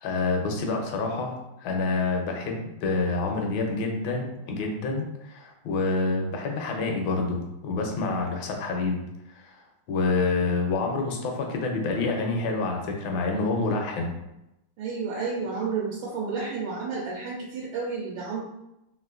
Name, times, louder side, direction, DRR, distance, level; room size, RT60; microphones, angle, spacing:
voice 1, 0.0-9.0 9.3-9.6 9.9-14.1, left 3 dB, 75° left, 2 dB, 1.2 m, -27 dB
voice 2, 14.8-18.4, right 4 dB, 90° right, -4 dB, 1.5 m, -31 dB
3.6 x 2.4 x 2.3 m, 0.89 s
omnidirectional pair, 2.4 m